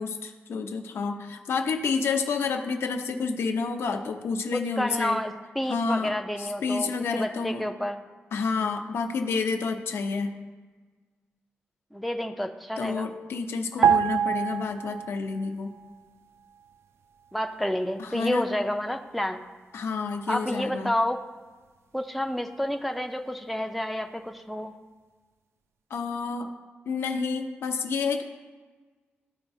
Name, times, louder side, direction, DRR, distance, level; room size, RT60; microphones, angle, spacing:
voice 1, 0.0-5.2 5.7-7.6 8.3-10.3 12.8-15.7 18.0-18.5 19.7-20.9 25.9-26.5 26.9-28.2, left 4 dB, 70° left, 5 dB, 0.7 m, -29 dB
voice 2, 4.5-6.9 7.1-8.0 11.9-13.1 13.8-14.0 17.3-19.4 20.3-21.2 21.9-24.7, left 1 dB, ahead, 4 dB, 0.4 m, -29 dB
sound 1, 13.8-15.5 15.7-15.9, right 8 dB, 75° right, 0.3 m, -24 dB
14.0 x 4.8 x 2.6 m, 1.4 s
wide cardioid pair, 155°, 4 cm